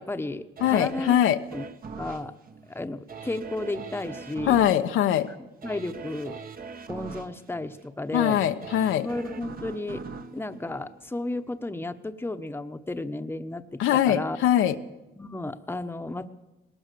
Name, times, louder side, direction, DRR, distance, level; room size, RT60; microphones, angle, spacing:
voice 1, 0.0-1.2 1.5-1.6 2.0-2.3 2.7-4.6 5.3-5.4 5.6-6.4 6.9-8.4 9.0-10.0 10.3-14.4 15.2-16.3, left 2 dB, 10° left, 8 dB, 1.1 m, -33 dB
voice 2, 0.6-1.4 4.5-5.3 8.1-9.1 13.8-14.8, left 11 dB, 85° left, 7 dB, 1.1 m, -22 dB
sound 1, 0.6-11.5 12.0-12.1, right 5 dB, 45° right, 1.5 m, -42 dB
20.0 x 19.0 x 6.9 m, 1.0 s
cardioid pair, 90°, 20 cm